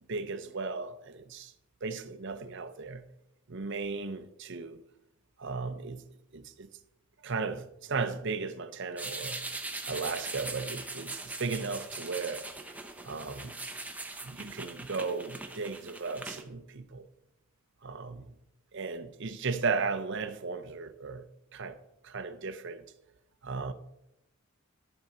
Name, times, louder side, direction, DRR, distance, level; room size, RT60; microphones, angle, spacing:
voice 1, 0.1-1.5 1.8-3.0 3.5-4.8 5.4-6.0 6.3-6.7 7.2-9.4 9.9-12.5 13.0-13.5 14.2-17.1 17.8-18.3 18.7-21.3 21.5-21.8 22.0-22.8 23.4-23.7, right 4 dB, 55° right, 0.7 m, -35 dB
sound 1, 9.0-16.4, right 2 dB, 5° right, 0.7 m, -41 dB
11.0 x 6.4 x 4.4 m
head